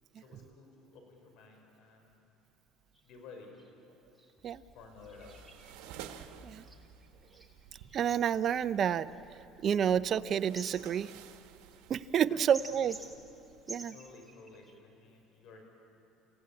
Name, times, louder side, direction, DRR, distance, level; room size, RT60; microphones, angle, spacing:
voice 1, 0.1-2.2 3.0-3.5 4.7-5.5 12.2-12.9 13.9-15.6, left 4 dB, 65° left, 3 dB, 5.7 m, -54 dB
sound 1, 2.9-3.1 3.6-3.7 4.2-14.7, right 2 dB, 5° right, 2.6 m, -52 dB
sound 2, 4.8-13.7, right 10 dB, 80° right, 1.4 m, -54 dB
voice 2, 7.9-9.1 9.6-11.1 11.9-13.0 13.7-13.9, right 8 dB, 45° right, 14 dB, 0.6 m, -29 dB
29.5 x 16.0 x 8.6 m, 2.8 s
cardioid pair, 115°, 0 cm